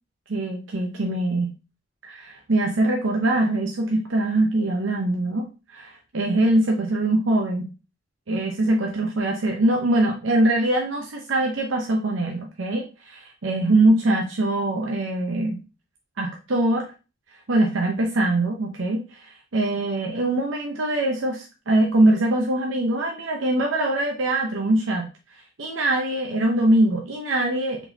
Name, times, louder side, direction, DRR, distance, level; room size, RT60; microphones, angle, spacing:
voice 1, 0.3-1.5 2.0-7.7 8.3-15.6 16.2-16.9 17.5-25.1 25.6-27.9, right 1 dB, 90° right, 1 dB, 0.7 m, -23 dB
4.6 x 3.9 x 2.7 m, 0.31 s
head